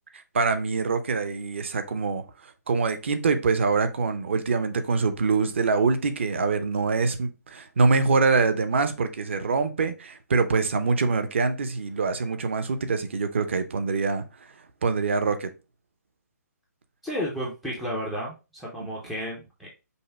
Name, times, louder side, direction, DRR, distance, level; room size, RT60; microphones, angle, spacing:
voice 1, 0.3-2.2 2.7-14.2 14.8-15.5, right 4 dB, 45° right, 0.6 m, -24 dB
voice 2, 17.0-19.7, equal, ahead, 0.4 m, -32 dB
5.4 x 2.0 x 4.2 m
hypercardioid pair, 170°, 9 cm